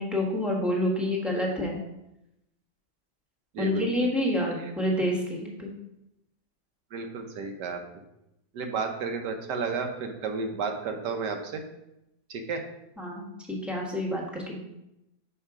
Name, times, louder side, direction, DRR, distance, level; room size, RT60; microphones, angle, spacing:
voice 1, 0.0-1.8 3.6-5.7 13.0-14.6, left 1 dB, ahead, -2 dB, 1.0 m, -28 dB
voice 2, 3.5-3.9 6.9-7.8 8.5-11.6 12.3-12.6, right 4 dB, 80° right, 5 dB, 1.5 m, -32 dB
5.7 x 4.8 x 4.8 m, 0.87 s
omnidirectional pair, 1.8 m